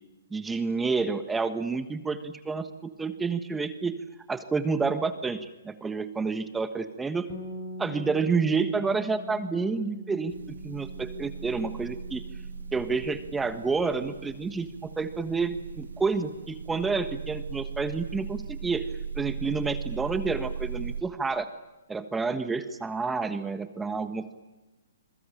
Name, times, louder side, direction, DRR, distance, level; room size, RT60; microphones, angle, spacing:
voice 1, 0.3-4.0 4.3-7.3 7.8-12.2 12.7-18.9 19.1-21.5 21.9-24.3, right 4 dB, 10° right, 10 dB, 1.4 m, -29 dB
sound 1, 7.3-17.0, left 1 dB, 35° left, 4.7 m, -44 dB
sound 2, 10.3-21.0, right 6 dB, 85° right, 1.4 m, -38 dB
27.5 x 21.5 x 8.8 m, 1.1 s
hypercardioid pair, 135°, 0 cm